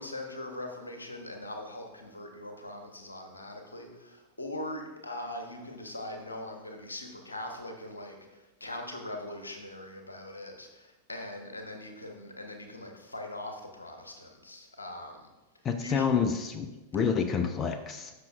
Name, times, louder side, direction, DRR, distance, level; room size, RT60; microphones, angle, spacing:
voice 1, 0.0-15.3 15.8-16.0, left 1 dB, 80° left, 4 dB, 1.1 m, -41 dB
voice 2, 15.6-18.1, left 6 dB, 25° left, 8 dB, 0.5 m, -28 dB
13.0 x 6.0 x 2.5 m, 1.1 s
figure-of-eight pair, 90°, 0 cm